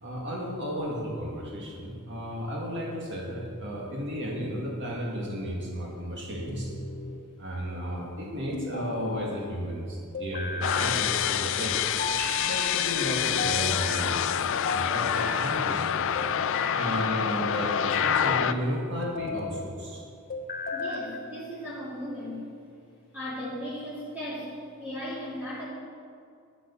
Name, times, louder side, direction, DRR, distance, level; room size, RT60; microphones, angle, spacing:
voice 1, 0.0-6.7 7.4-11.9 12.4-14.2 14.7-16.2 16.7-20.0, equal, 55° right, -3 dB, 2.0 m, -33 dB
sound 1, 6.5-7.2 8.5-9.3 10.1-10.9 12.0-12.8 13.4-14.0 14.7-15.5 16.2-16.8 17.5-18.5 19.0-19.5 20.3-21.1, left 4 dB, 40° left, 1.0 m, -34 dB
sound 2, 10.6-18.5, left 9 dB, 60° left, 0.4 m, -27 dB
voice 2, 20.7-22.4 23.1-25.7, equal, 10° right, -10 dB, 2.9 m, -36 dB
9.3 x 8.4 x 7.1 m, 2.4 s
head